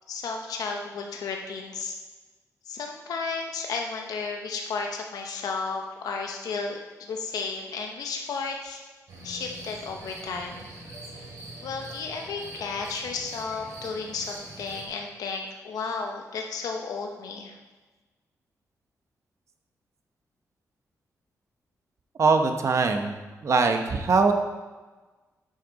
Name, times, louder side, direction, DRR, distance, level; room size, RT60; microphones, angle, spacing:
voice 1, 0.1-1.9 2.7-8.8 9.2-10.7 11.2-11.3 11.6-17.6, left 4 dB, 90° left, 2 dB, 0.9 m, -33 dB
sound 1, 9.1-14.9, right 2 dB, 80° right, 2.5 m, -43 dB
voice 2, 22.2-23.1 23.4-24.3, right 4 dB, 55° right, 5 dB, 0.9 m, -22 dB
9.4 x 6.6 x 4.0 m, 1.3 s
cardioid pair, 90°, 6 cm